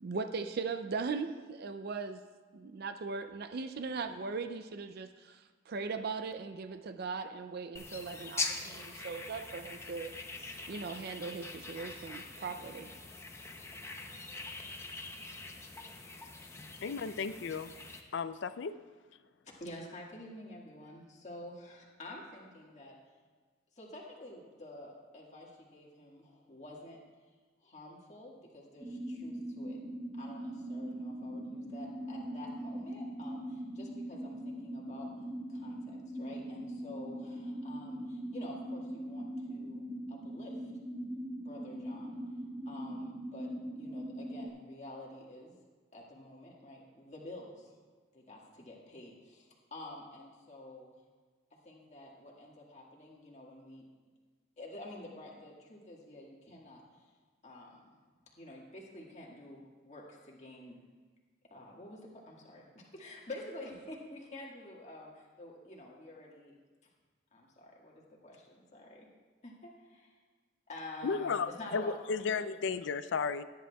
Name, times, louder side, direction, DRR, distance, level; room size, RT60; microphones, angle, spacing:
voice 1, 0.0-2.2 2.5-10.1 10.7-13.0, right 4 dB, 50° right, 8 dB, 0.4 m, -39 dB
sound 1, 7.8-18.0, left 3 dB, 15° left, 0.6 m, -43 dB
voice 2, 16.8-17.7 18.1-18.8 71.0-73.4, left 5 dB, 60° left, 13 dB, 0.4 m, -34 dB
voice 3, 19.6-22.9 23.7-27.0 27.6-29.8 30.2-35.1 35.5-39.8 40.1-40.5 41.4-42.2 42.7-43.5 43.8-45.6 45.9-47.7 48.1-50.9 51.6-53.8 54.6-57.1 57.4-57.9 58.4-60.8 61.5-66.5 67.3-69.1 69.4-70.2 70.7-72.4, left 1 dB, 35° left, -3 dB, 1.7 m, -49 dB
sound 2, 28.8-44.5, right 1 dB, 5° right, 1.4 m, -41 dB
17.5 x 10.0 x 2.3 m, 1.4 s
head